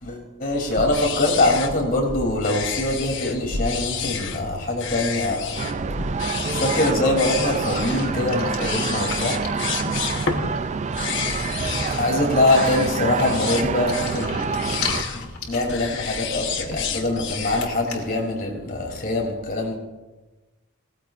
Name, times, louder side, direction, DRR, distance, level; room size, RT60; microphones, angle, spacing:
voice 1, 0.0-5.7 6.5-9.4 12.0-14.5 15.5-19.8, left 2 dB, 40° left, 0 dB, 3.1 m, -23 dB
sound 1, 0.7-17.7, left 5 dB, 55° left, 1.1 m, -31 dB
sound 2, 5.6-15.0, right 5 dB, 30° right, 0.3 m, -27 dB
sound 3, 6.3-6.4 6.8-10.6 10.9-11.0 11.2-11.6 12.0-12.6 13.2-18.2, left 5 dB, 90° left, 2.3 m, -36 dB
19.0 x 14.5 x 2.5 m, 1.1 s
head